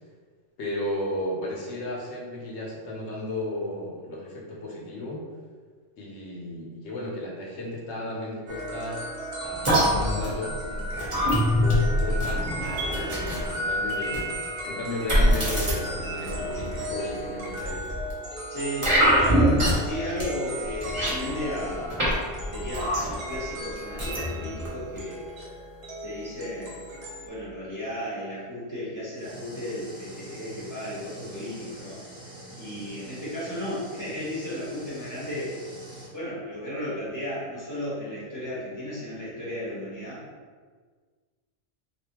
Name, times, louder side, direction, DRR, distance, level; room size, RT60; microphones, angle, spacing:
voice 1, 0.6-5.3 6.0-9.1 9.4-10.9 11.6-14.3 14.7-17.9, left 1 dB, 70° left, -3 dB, 1.0 m, -34 dB
sound 1, 8.5-27.3, equal, 60° right, 0.9 m, -36 dB
sound 2, 9.6-13.5 14.1-14.3 15.1-15.7 16.2-16.8 17.6-18.1 18.8-19.9 20.2-20.3 20.6-22.1 22.4-23.4 24.0-24.7 24.9-25.0, equal, 25° right, 0.9 m, -24 dB
voice 2, 18.5-22.0 22.5-25.2 26.0-26.9 27.2-32.0 32.5-35.6 36.1-40.2, equal, 15° left, -9 dB, 1.1 m, -34 dB
sound 3, 29.1-36.1, right 1 dB, 5° right, 0.5 m, -44 dB
3.4 x 2.6 x 2.9 m, 1.5 s
omnidirectional pair, 1.3 m